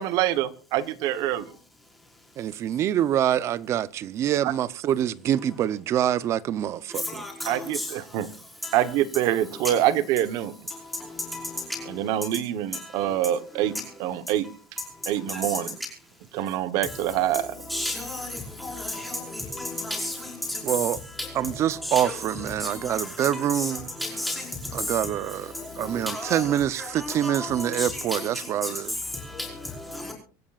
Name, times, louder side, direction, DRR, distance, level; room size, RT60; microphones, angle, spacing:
voice 1, 0.0-1.4 4.4-4.5 7.5-8.3 8.7-10.5 11.9-13.7 14.0-14.4 15.1-15.8 16.3-17.5, right 12 dB, 50° right, 1.1 m, -25 dB
voice 2, 2.4-7.2 20.6-21.0 21.4-23.9 24.8-28.9, right 11 dB, 35° right, 0.6 m, -26 dB
voice 3, 17.7-18.3 18.6-18.7 20.0-20.1 21.9-22.1 24.0-24.3 26.1-26.4 27.0-27.3 27.8-27.9, left 1 dB, ahead, 5.1 m, -31 dB
25.5 x 14.5 x 2.4 m
cardioid pair, 160°, 9 cm